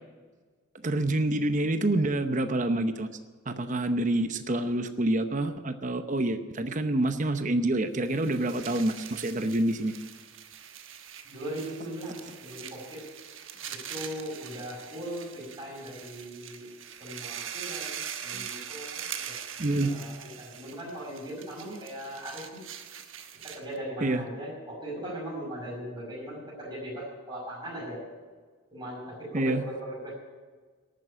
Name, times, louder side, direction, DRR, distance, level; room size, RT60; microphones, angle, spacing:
voice 1, 0.8-3.1 3.5-9.9 18.3-18.5 19.6-20.0 24.0-24.2 29.3-29.6, right 1 dB, 35° right, 9 dB, 0.8 m, -27 dB
sound 1, 8.0-23.8, right 9 dB, 65° right, 1.2 m, -42 dB
voice 2, 11.2-13.0 13.7-16.7 17.0-19.3 19.7-22.6 23.4-28.0 28.7-30.2, right 1 dB, 20° right, -5 dB, 5.7 m, -39 dB
12.0 x 9.3 x 9.9 m, 1.4 s
head